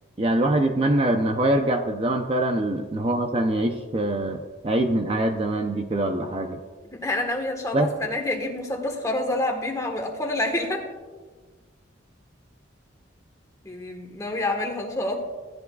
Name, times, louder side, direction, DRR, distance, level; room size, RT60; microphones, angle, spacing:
voice 1, 0.2-6.6 7.7-7.9, right 1 dB, 30° right, 5 dB, 0.5 m, -24 dB
voice 2, 6.9-10.9 13.6-15.2, left 2 dB, 15° left, 2 dB, 1.2 m, -28 dB
15.5 x 10.5 x 2.3 m, 1.4 s
head